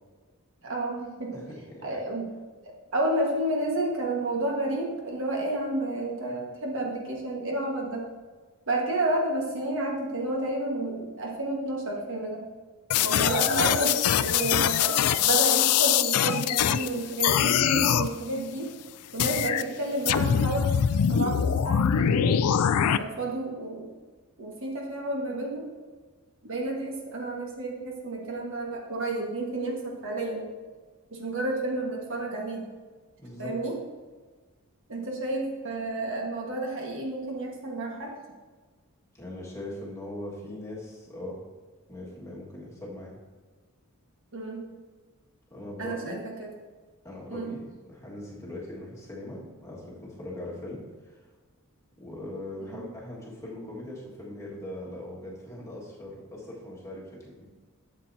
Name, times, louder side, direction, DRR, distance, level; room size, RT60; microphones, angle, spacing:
voice 1, 0.6-1.4 1.8-2.3 2.9-8.0 8.7-12.4 13.0-18.7 19.1-20.8 21.1-22.4 22.7-23.9 24.4-25.6 26.4-30.5 31.1-32.6 33.4-33.7 34.9-38.1 44.3-44.6 45.8-46.5 47.3-47.5 52.6-52.9, right 2 dB, 60° right, -1 dB, 1.5 m, -31 dB
voice 2, 1.3-2.0 12.9-13.2 33.2-33.6 39.2-41.4 41.9-43.1 45.5-46.2 47.0-51.2 52.0-57.5, left 1 dB, 15° left, -5 dB, 1.8 m, -40 dB
sound 1, 12.9-16.9 17.2-18.1 19.2-19.6 20.1-23.0, left 9 dB, 80° left, 0.4 m, -23 dB
11.5 x 7.4 x 2.8 m, 1.4 s
head